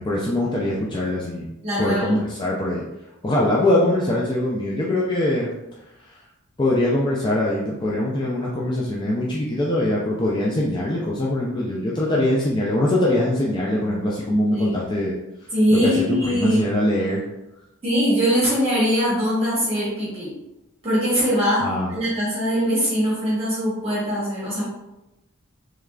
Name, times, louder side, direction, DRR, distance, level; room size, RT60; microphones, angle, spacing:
voice 1, 0.0-1.5 1.8-2.8 3.2-5.5 6.1-6.2 6.6-15.1 15.7-17.2 21.6-21.9, left 1 dB, 20° left, -5 dB, 0.4 m, -22 dB
voice 2, 1.6-2.1 14.5-14.8 15.5-16.6 17.8-20.3 20.8-24.7, equal, 30° right, -8 dB, 1.1 m, -22 dB
3.5 x 3.1 x 2.4 m, 0.95 s
head